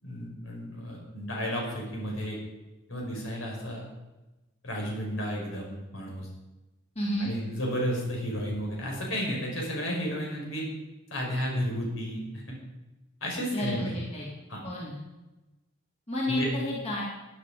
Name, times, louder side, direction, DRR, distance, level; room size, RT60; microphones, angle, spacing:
voice 1, 0.0-2.4 2.9-3.9 4.6-6.3 7.2-10.6 11.1-12.6 13.2-14.0 14.5-14.6 16.3-16.5, equal, 65° left, -2 dB, 5.2 m, -32 dB
voice 2, 6.9-7.3 13.5-14.3 14.6-15.0 16.1-17.0, left 1 dB, 30° left, -5 dB, 2.8 m, -31 dB
16.5 x 10.5 x 5.0 m, 1.1 s
head